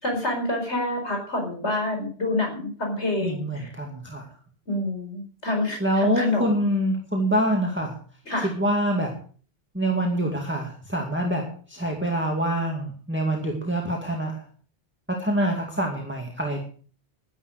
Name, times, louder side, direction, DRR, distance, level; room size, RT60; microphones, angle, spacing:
voice 1, 0.0-3.7 4.7-6.7 8.3-8.5, left 2 dB, 90° left, 2 dB, 4.9 m, -27 dB
voice 2, 3.2-4.2 5.8-7.9 8.4-9.1 9.7-14.4 15.1-16.6, right 1 dB, 10° right, 0 dB, 2.3 m, -25 dB
12.5 x 11.0 x 6.5 m, 0.43 s
omnidirectional pair, 1.1 m